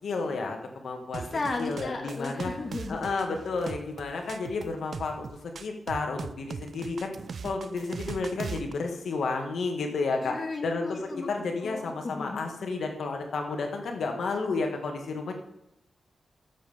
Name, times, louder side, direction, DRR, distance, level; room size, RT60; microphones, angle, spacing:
voice 1, 0.0-1.3 1.6-2.5 2.9-7.2 7.4-10.4 10.6-15.3, left 3 dB, 90° left, 3 dB, 1.9 m, -31 dB
sound 1, 1.1-8.7, right 5 dB, 65° right, 0.6 m, -39 dB
voice 2, 1.2-3.0 10.2-11.3 11.6-12.4, left 3 dB, 45° left, 3 dB, 1.7 m, -35 dB
14.0 x 7.6 x 3.6 m, 0.82 s
wide cardioid pair, 105°, 0 cm